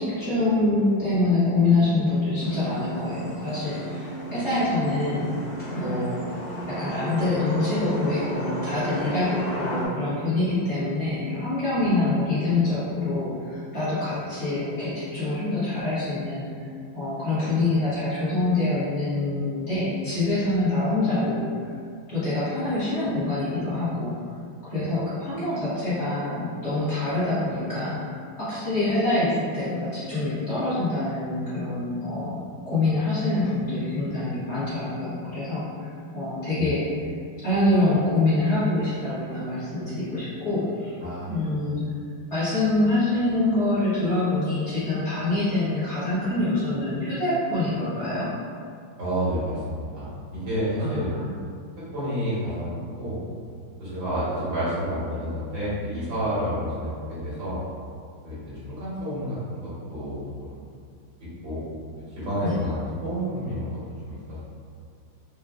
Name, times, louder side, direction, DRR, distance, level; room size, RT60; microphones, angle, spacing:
voice 1, 0.0-5.3 5.7-6.2 6.7-16.7 16.9-21.7 22.1-24.1 24.6-28.0 28.4-32.3 32.6-36.9 37.4-41.0 41.3-41.8 42.3-48.3 50.8-51.4 62.4-62.6, left 2 dB, 45° left, -13 dB, 1.2 m, -25 dB
sound 1, 2.4-9.9, right 1 dB, 65° left, 0.5 m, -34 dB
voice 2, 49.0-51.1 51.9-52.7 53.0-53.2 53.8-57.6 58.2-60.6 61.4-61.6 62.2-64.4, equal, 85° right, -12 dB, 2.3 m, -29 dB
4.8 x 2.1 x 2.3 m, 2.2 s
omnidirectional pair, 2.0 m